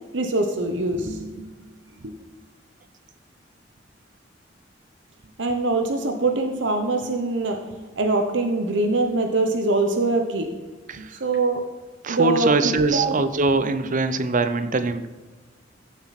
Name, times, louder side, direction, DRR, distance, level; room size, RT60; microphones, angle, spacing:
voice 1, 0.1-1.6 2.0-2.2 5.4-10.5 11.0-11.6 12.1-13.1 14.6-14.7, right 2 dB, 70° right, 5 dB, 1.0 m, -24 dB
voice 2, 12.0-15.1, right 3 dB, 45° right, 11 dB, 0.7 m, -22 dB
15.0 x 7.4 x 4.2 m, 1.3 s
head